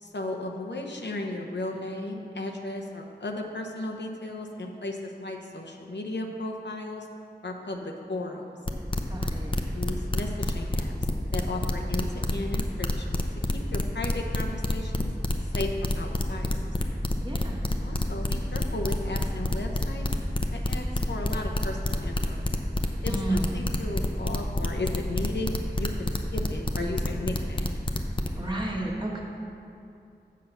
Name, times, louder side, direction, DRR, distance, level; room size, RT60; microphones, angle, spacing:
voice 1, 0.0-7.1 7.4-8.5 9.7-10.9 11.3-13.2 13.5-15.1 15.4-16.7 17.8-20.1 20.5-22.5 23.0-27.7, left 2 dB, 85° left, 1 dB, 0.8 m, -35 dB
sound 1, 8.7-28.3, left 1 dB, 30° left, 0.6 m, -27 dB
voice 2, 9.1-9.5 17.2-17.6 23.1-23.6 28.4-29.2, right 1 dB, 25° right, -3 dB, 1.5 m, -31 dB
7.6 x 5.6 x 6.8 m, 2.6 s
wide cardioid pair, 50°, 18 cm